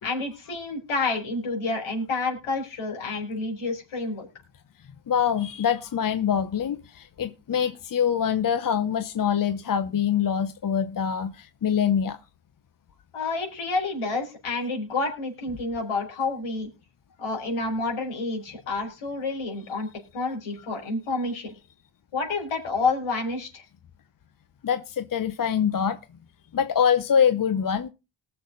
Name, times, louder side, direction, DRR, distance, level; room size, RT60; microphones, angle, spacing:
voice 1, 0.0-4.3 13.1-16.7 17.2-21.5 22.1-23.6, left 3 dB, 75° left, 5.1 m, -29 dB
voice 2, 5.1-12.2 20.6-20.7 24.6-26.0 26.5-27.9, left 8 dB, 40° left, 0.8 m, -24 dB
20.0 x 6.8 x 4.0 m
cardioid pair, 80°, 49 cm